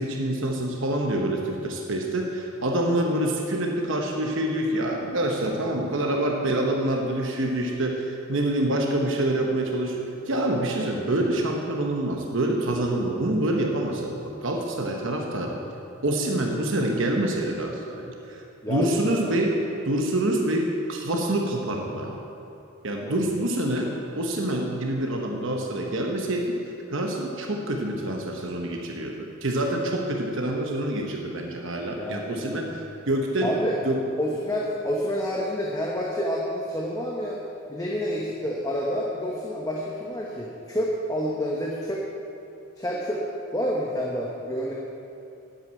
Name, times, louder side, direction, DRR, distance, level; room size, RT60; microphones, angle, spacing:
voice 1, 0.0-15.6 16.0-18.4 18.7-19.6 19.8-22.2 22.8-26.6 26.9-33.6 33.8-34.0, right 1 dB, 60° right, 1 dB, 1.0 m, -26 dB
voice 2, 18.6-19.3 23.0-23.2 32.0-32.6 33.4-33.8 34.2-37.4 37.7-42.0 42.8-43.2 43.5-44.7, equal, 15° left, -3 dB, 1.0 m, -29 dB
8.8 x 8.0 x 8.8 m, 2.8 s
head